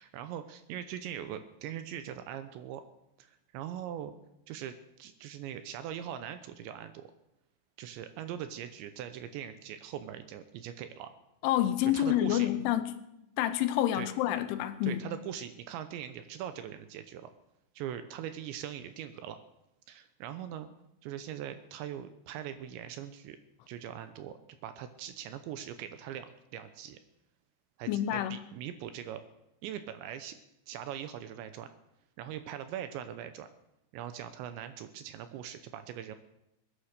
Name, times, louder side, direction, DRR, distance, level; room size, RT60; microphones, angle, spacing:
voice 1, 0.0-2.8 3.2-4.1 4.5-7.1 7.8-11.1 11.9-12.5 13.9-14.1 14.8-17.3 17.8-19.4 19.9-20.7 21.0-23.4 23.7-27.0 27.8-29.2 29.6-30.4 30.7-31.7 32.2-33.5 33.9-36.2, right 10 dB, 80° right, 2.8 m, -41 dB
voice 2, 11.4-12.9 13.4-15.0 27.9-28.4, left 12 dB, 80° left, 3.1 m, -28 dB
21.0 x 9.9 x 6.6 m
omnidirectional pair, 5.7 m